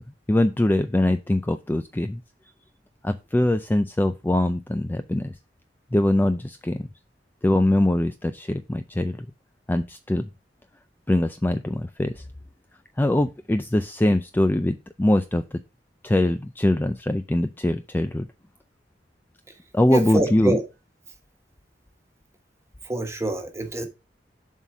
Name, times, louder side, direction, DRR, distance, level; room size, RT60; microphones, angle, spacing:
voice 1, 0.3-2.2 3.0-5.3 5.9-6.9 7.4-9.3 9.7-10.2 11.1-12.2 13.0-15.6 16.0-18.3 19.7-20.6, left 1 dB, 10° left, 0.4 m, -22 dB
voice 2, 19.9-20.6 22.9-23.8, right 1 dB, 15° right, 1.4 m, -25 dB
7.4 x 4.1 x 6.0 m
head